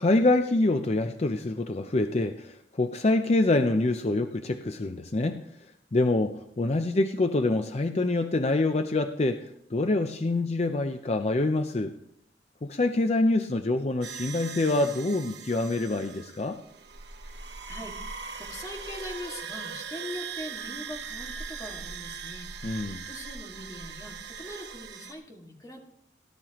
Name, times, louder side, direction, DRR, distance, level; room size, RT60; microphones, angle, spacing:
voice 1, 0.0-5.4 5.9-9.4 9.7-11.9 12.6-16.6 22.6-23.0, left 2 dB, 35° left, 7 dB, 0.5 m, -26 dB
sound 1, 14.0-25.1, right 6 dB, 70° right, 1.0 m, -40 dB
voice 2, 17.7-25.8, left 1 dB, 20° left, 0 dB, 2.0 m, -42 dB
18.5 x 11.0 x 3.0 m, 0.73 s
head